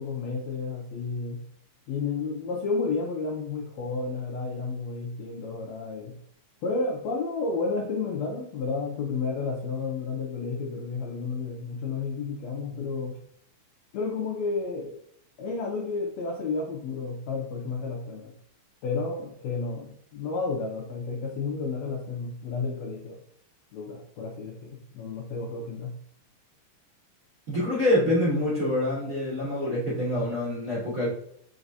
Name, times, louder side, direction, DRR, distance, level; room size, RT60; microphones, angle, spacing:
voice 1, 0.0-1.4 1.9-6.2 6.6-13.2 13.9-15.0 15.4-18.3 18.8-23.2 23.7-26.0, left 4 dB, 80° left, -1 dB, 1.6 m, -31 dB
voice 2, 27.5-31.1, left 1 dB, 50° right, -7 dB, 1.0 m, -26 dB
4.7 x 4.0 x 2.6 m, 0.68 s
omnidirectional pair, 3.9 m